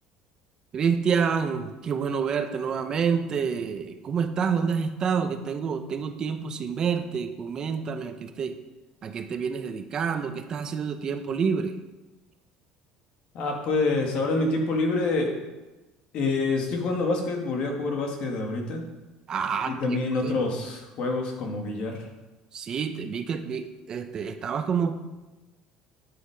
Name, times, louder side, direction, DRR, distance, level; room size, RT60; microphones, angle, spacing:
voice 1, 0.7-8.6 9.0-11.8 19.3-20.4 22.5-25.1, right 6 dB, 35° right, 8 dB, 0.8 m, -28 dB
voice 2, 13.3-15.4 16.1-18.8 19.7-22.1, left 3 dB, 55° left, 2 dB, 2.5 m, -27 dB
11.5 x 7.9 x 5.1 m, 1.1 s
cardioid pair, 135°, 2 cm